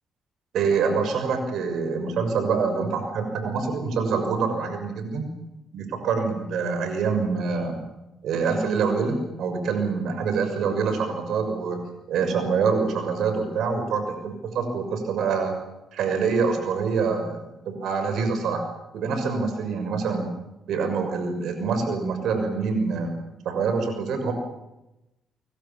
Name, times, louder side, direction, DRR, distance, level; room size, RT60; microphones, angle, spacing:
voice 1, 0.5-5.2 5.7-7.8 8.2-15.5 15.9-18.6 18.9-20.3 20.7-23.1 23.4-24.3, right 5 dB, 75° right, 7 dB, 6.4 m, -25 dB
27.5 x 23.5 x 7.4 m, 0.96 s
cardioid pair, 90°, 0 cm